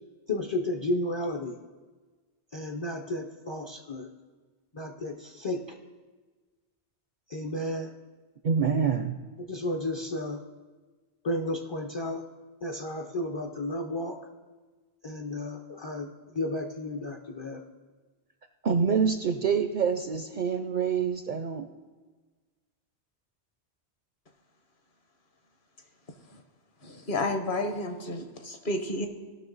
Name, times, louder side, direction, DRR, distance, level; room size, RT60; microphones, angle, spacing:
voice 1, 0.3-1.5 2.5-4.1 4.7-5.8 7.3-7.9 9.4-10.4 11.2-12.2 12.6-14.2 15.0-17.6, left 1 dB, 35° left, 2 dB, 0.4 m, -33 dB
voice 2, 8.4-9.2 18.6-21.7, right 6 dB, 60° right, 8 dB, 0.5 m, -26 dB
voice 3, 26.8-29.1, left 2 dB, 50° left, 6 dB, 1.1 m, -31 dB
17.5 x 5.9 x 3.9 m, 1.4 s
omnidirectional pair, 1.2 m